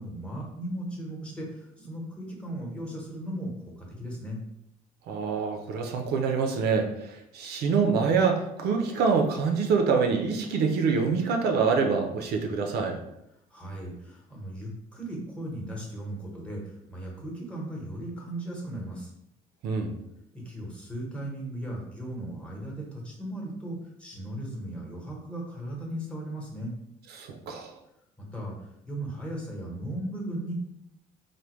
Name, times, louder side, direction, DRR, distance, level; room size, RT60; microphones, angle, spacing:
voice 1, 0.0-4.4 13.5-19.1 20.3-26.7 28.3-28.6 28.8-30.5, right 1 dB, 5° left, -2 dB, 1.0 m, -37 dB
voice 2, 5.1-13.0 19.6-19.9 27.1-27.7, right 5 dB, 70° right, 3 dB, 0.5 m, -26 dB
3.4 x 2.2 x 3.0 m, 0.82 s
cardioid pair, 110°, 17 cm